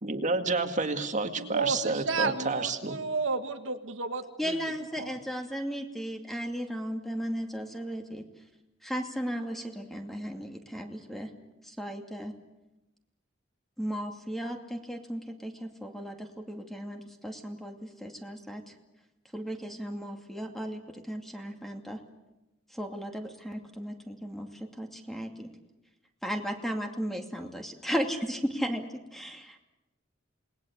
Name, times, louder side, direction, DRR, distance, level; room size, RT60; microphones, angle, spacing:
voice 1, 0.0-3.0, right 3 dB, 40° right, 6 dB, 2.1 m, -30 dB
voice 2, 1.4-4.7 5.0-5.1, right 4 dB, 80° right, 6 dB, 1.7 m, -32 dB
voice 3, 4.4-8.3 8.8-11.3 11.6-12.3 13.8-18.6 19.3-22.0 22.7-25.5 26.2-28.9 29.1-29.6, equal, ahead, 3 dB, 2.5 m, -35 dB
28.5 x 20.5 x 8.3 m, 0.98 s
head